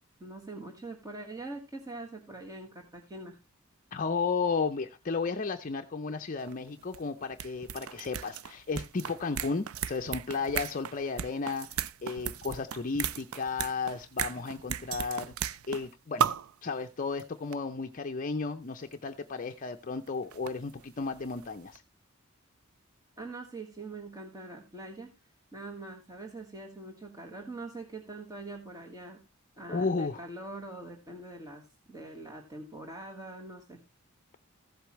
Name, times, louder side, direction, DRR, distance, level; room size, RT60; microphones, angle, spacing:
voice 1, 0.2-3.4 23.2-25.1 25.5-29.2 29.6-33.8, right 2 dB, 15° right, 1 dB, 1.5 m, -43 dB
voice 2, 3.9-16.3 16.6-21.8 29.7-30.2, left 4 dB, 40° left, 6 dB, 0.6 m, -33 dB
sound 1, 6.5-6.6 6.8-15.9 16.2-16.5 17.2-17.3 17.5-17.6 18.9-19.0 20.1-21.5 21.7-21.8, right 8 dB, 80° right, 0.4 m, -35 dB
15.0 x 8.1 x 3.1 m, 0.25 s
head